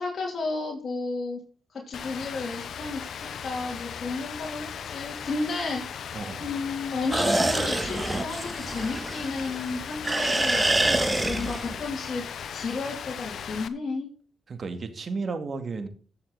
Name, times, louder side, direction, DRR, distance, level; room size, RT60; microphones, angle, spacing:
voice 1, 0.0-1.4 1.7-3.1 3.4-12.2 12.5-14.1, left 3 dB, 55° left, 2.9 m, -32 dB
Rain, 1.9-13.7, left 7 dB, 70° left, 0.9 m, -37 dB
voice 2, 6.1-6.5 10.8-11.3 14.5-15.9, right 4 dB, 50° right, 2.2 m, -34 dB
sound 1, 7.1-9.7 10.0-11.9, right 2 dB, 20° right, 1.6 m, -26 dB
14.5 x 7.1 x 4.0 m
supercardioid pair, 55°, 0 cm